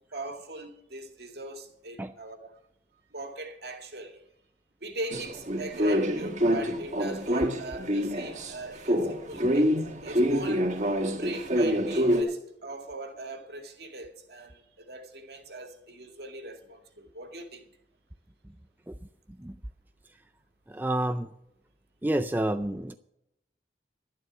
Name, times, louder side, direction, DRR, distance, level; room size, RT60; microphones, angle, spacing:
voice 1, 0.1-2.6 3.1-4.2 4.8-9.8 10.0-10.7 11.2-17.7, right 2 dB, 60° right, 2.1 m, -40 dB
sound 1, 5.1-8.5 8.9-12.2, equal, 40° right, 1.5 m, -26 dB
voice 2, 20.7-21.3 22.0-23.0, right 1 dB, 10° right, 0.4 m, -29 dB
12.0 x 11.0 x 6.1 m
head